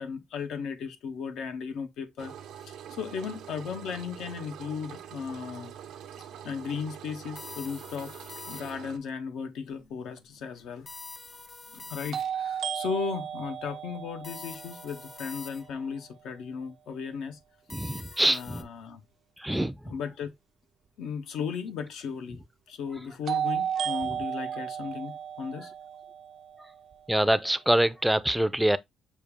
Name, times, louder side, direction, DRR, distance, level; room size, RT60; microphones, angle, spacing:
voice 1, 0.0-2.3 2.6-5.7 6.4-8.2 8.5-10.9 11.7-17.4 17.8-19.0 19.9-20.3 21.0-25.7, left 6 dB, 80° left, 0.8 m, -36 dB
Engine, 2.2-9.0, right 9 dB, 85° right, 0.8 m, -45 dB
sound 1, 7.4-9.0 10.9-12.5 14.2-15.9 17.7-18.6, left 3 dB, 30° left, 0.6 m, -45 dB
sound 2, 10.2-10.3 12.1-16.0 23.3-27.3, right 8 dB, 60° right, 0.5 m, -34 dB
voice 2, 17.7-18.7 19.4-20.0 26.6-26.7 27.1-28.8, right 1 dB, 5° right, 0.4 m, -25 dB
6.4 x 2.3 x 3.5 m
cardioid pair, 90°, 0 cm